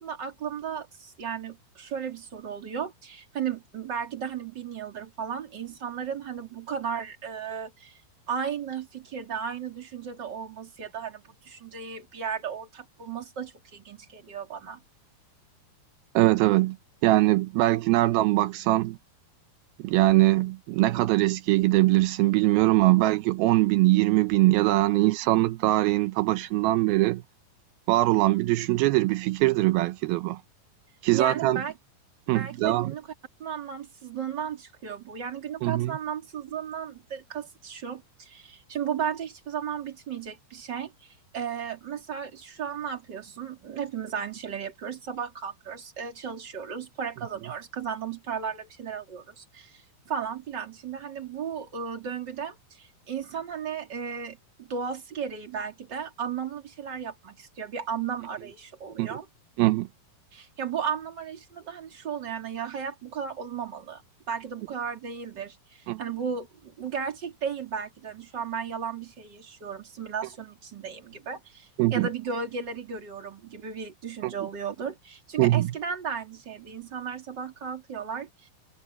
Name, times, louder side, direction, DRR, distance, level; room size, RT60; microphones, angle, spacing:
voice 1, 0.0-8.0 8.3-14.8 31.1-31.7 32.3-33.1 33.4-59.3 60.3-64.0 64.3-78.5, right 7 dB, 30° right, 3.4 m, -35 dB
voice 2, 16.2-16.8 17.0-19.0 19.8-27.2 27.9-30.4 31.0-31.6 32.3-32.9 35.6-35.9 59.0-59.2 59.6-59.9 65.9-66.0 71.8-72.1 74.2-74.3 75.4-75.7, right 18 dB, 85° right, 2.5 m, -22 dB
omnidirectional pair, 4.3 m